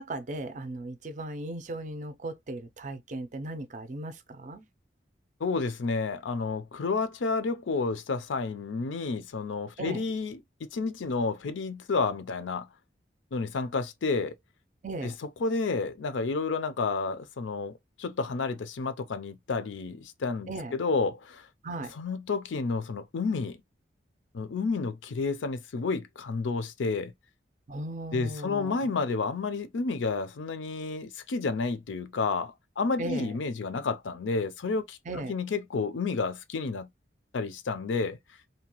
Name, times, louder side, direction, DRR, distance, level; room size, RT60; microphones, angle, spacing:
voice 1, 0.0-4.6 9.8-10.0 14.8-15.1 20.5-20.8 21.6-21.9 27.7-28.9 33.0-33.4 35.1-35.3, right 2 dB, 40° right, 0.4 m, -37 dB
voice 2, 5.4-12.7 13.3-14.3 15.0-15.1 15.4-21.4 22.0-23.6 24.3-27.1 28.1-36.9 37.3-38.2, left 4 dB, 85° left, 0.5 m, -30 dB
2.8 x 2.2 x 2.9 m
head